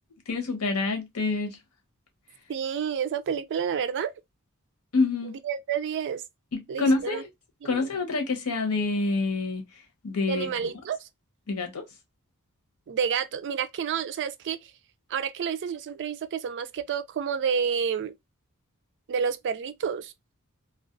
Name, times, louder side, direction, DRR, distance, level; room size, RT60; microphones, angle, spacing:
voice 1, 0.3-1.6 4.9-5.4 6.5-7.3 7.6-9.6 10.0-10.5 11.5-11.8, left 3 dB, 80° left, 0.9 m, -27 dB
voice 2, 2.5-4.1 5.4-6.2 6.7-7.2 7.6-7.8 10.3-11.1 12.9-14.7 15.1-18.1 19.1-20.1, right 7 dB, 55° right, 0.3 m, -29 dB
2.3 x 2.2 x 2.4 m
head